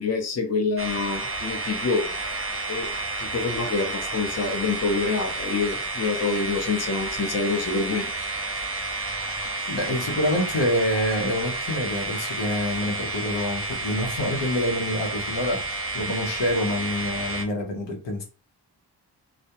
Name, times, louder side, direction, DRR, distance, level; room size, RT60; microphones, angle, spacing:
voice 1, 0.0-2.2 2.7-2.9 3.2-8.1, left 4 dB, 40° left, 4 dB, 0.6 m, -26 dB
sound 1, 0.8-17.4, right 2 dB, 35° right, 0.6 m, -31 dB
voice 2, 9.7-15.6 15.9-18.2, left 1 dB, 85° left, 1 dB, 0.8 m, -26 dB
2.2 x 2.1 x 2.8 m, 0.34 s
cardioid pair, 60°, 42 cm